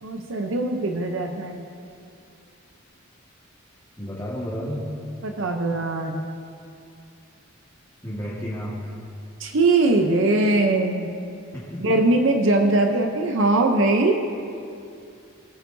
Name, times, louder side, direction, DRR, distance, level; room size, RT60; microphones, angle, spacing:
voice 1, 0.0-1.7 5.2-6.2 9.4-11.1 11.8-14.1, right 2 dB, 65° right, 4 dB, 0.7 m, -21 dB
voice 2, 4.0-4.8 8.0-8.8 11.5-11.9 12.9-13.0, equal, 15° left, -8 dB, 1.7 m, -31 dB
19.5 x 9.2 x 2.7 m, 2.5 s
head